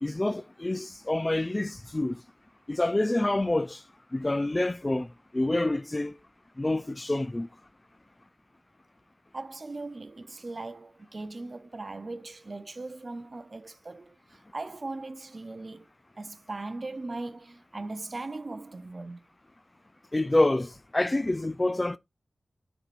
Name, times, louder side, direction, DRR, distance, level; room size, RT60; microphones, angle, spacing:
voice 1, 0.0-2.2 2.7-3.8 4.1-5.1 5.3-6.1 6.6-7.5 20.1-22.0, left 2 dB, 25° left, 0.4 m, -27 dB
voice 2, 9.3-15.9 16.2-19.2, right 2 dB, 40° right, 0.6 m, -39 dB
9.7 x 4.4 x 2.5 m
wide cardioid pair, 95°, 0 cm